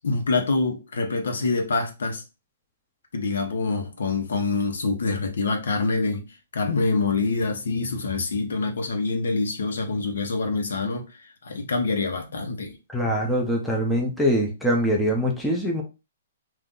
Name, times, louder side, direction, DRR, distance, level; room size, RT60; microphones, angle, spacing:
voice 1, 0.0-2.2 3.1-6.2 6.5-11.1 11.4-12.7, left 3 dB, 90° left, 0.9 m, -25 dB
voice 2, 12.9-15.8, equal, ahead, 0.6 m, -23 dB
2.6 x 2.4 x 3.7 m
hypercardioid pair, 165°, 0 cm